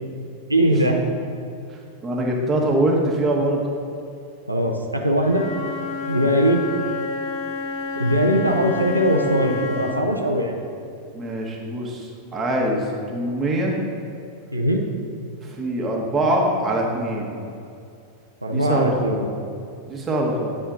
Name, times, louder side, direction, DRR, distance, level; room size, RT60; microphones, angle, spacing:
voice 1, 0.5-1.0 4.5-5.5 6.1-6.6 8.0-10.5 14.5-14.8 18.4-19.3, equal, 85° right, 1 dB, 0.5 m, -20 dB
voice 2, 1.7-3.6 11.1-13.8 15.4-17.4 18.5-19.2 19.9-20.5, right 1 dB, 20° right, -1 dB, 1.2 m, -23 dB
Wind instrument woodwind instrument, 5.2-10.0, left 3 dB, 45° left, 0.9 m, -30 dB
9.3 x 4.3 x 3.8 m, 2.5 s
figure-of-eight pair, 90°, 0 cm